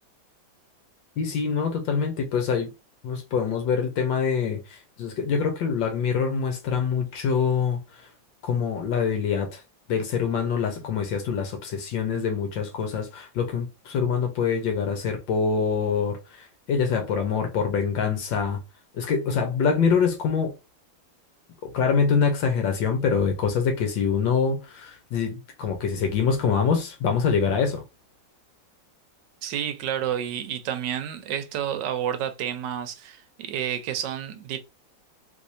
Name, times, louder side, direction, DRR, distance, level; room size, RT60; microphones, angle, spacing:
voice 1, 1.2-2.7 3.0-7.8 8.5-9.6 9.9-18.6 19.0-20.5 21.6-27.8, left 6 dB, 80° left, 1.5 m, -25 dB
voice 2, 29.4-34.6, right 10 dB, 75° right, 1.2 m, -30 dB
3.4 x 3.1 x 2.6 m
omnidirectional pair, 2.0 m